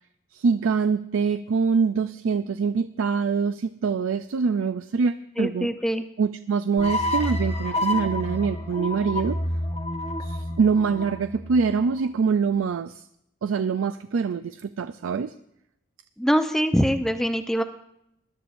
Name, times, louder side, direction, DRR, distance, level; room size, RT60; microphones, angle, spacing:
voice 1, 0.3-5.7 6.2-9.4 10.2-13.0 13.4-15.3, right 5 dB, 90° right, 11 dB, 0.4 m, -24 dB
voice 2, 5.4-6.1 16.2-17.6, equal, ahead, 7 dB, 0.6 m, -23 dB
sound 1, 6.8-12.0, left 1 dB, 30° left, 0.9 m, -29 dB
21.0 x 12.0 x 2.6 m, 0.79 s
head